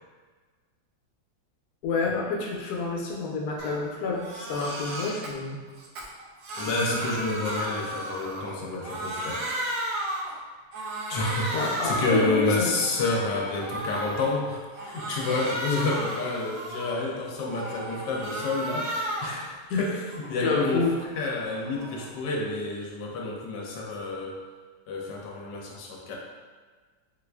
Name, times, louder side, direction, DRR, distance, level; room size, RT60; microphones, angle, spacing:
voice 1, 1.8-5.6 11.5-12.8 19.7-19.8 20.4-20.9, left 4 dB, 70° left, -2 dB, 1.1 m, -28 dB
Crying sobbing, 3.6-3.8 4.1-5.3 5.8-8.6 8.8-10.4 10.7-12.3 12.7-14.3 14.7-17.1 17.5-19.4 19.8-22.2, right 1 dB, 70° right, 0.8 m, -34 dB
voice 2, 6.6-9.5 11.1-20.8 21.2-24.4 24.9-26.2, left 2 dB, 90° left, -2 dB, 1.2 m, -29 dB
4.3 x 2.4 x 2.2 m, 1.5 s
omnidirectional pair, 1.8 m